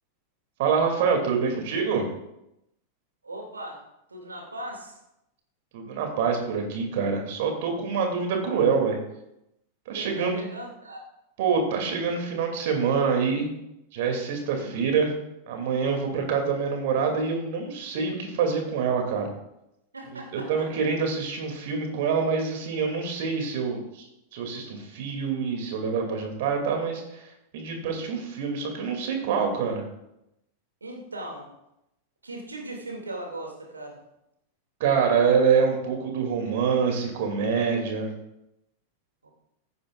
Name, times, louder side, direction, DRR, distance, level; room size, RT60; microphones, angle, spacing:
voice 1, 0.6-2.1 5.7-9.0 9.9-10.4 11.4-13.5 13.9-15.1 15.5-19.3 20.1-20.2 20.5-24.1 24.3-27.3 27.5-29.9 34.8-38.1, right 5 dB, 50° right, 3 dB, 2.6 m, -26 dB
voice 2, 3.2-3.8 4.1-5.0 9.9-11.0 14.6-14.8 19.9-20.7 30.8-31.5 32.2-34.0 39.2-39.3, right 1 dB, 75° right, 1 dB, 2.5 m, -38 dB
15.5 x 9.7 x 2.5 m, 0.85 s
figure-of-eight pair, 90°, 0 cm